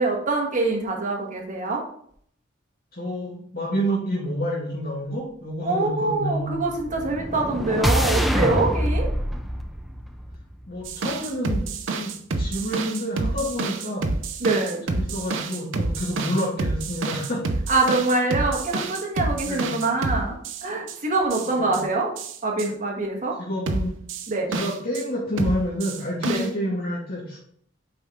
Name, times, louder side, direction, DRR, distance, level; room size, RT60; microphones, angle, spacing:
voice 1, 0.0-1.8 5.6-9.1 14.4-14.8 17.7-20.3 20.6-22.1 22.4-23.4 24.3-24.5 26.3-26.5, right 3 dB, 40° right, 0 dB, 1.4 m, -24 dB
voice 2, 2.9-6.6 10.7-14.1 14.9-17.5 19.4-19.8 21.5-21.8 23.4-24.0 24.5-27.4, equal, 50° left, -6 dB, 1.9 m, -28 dB
sound 1, 6.7-10.9, equal, ahead, 0.4 m, -25 dB
sound 2, 10.9-21.0 21.3-21.8 22.2-22.7 23.7-25.0 25.4-26.5, right 3 dB, 70° right, 0.6 m, -28 dB
6.5 x 4.4 x 3.6 m, 0.64 s
head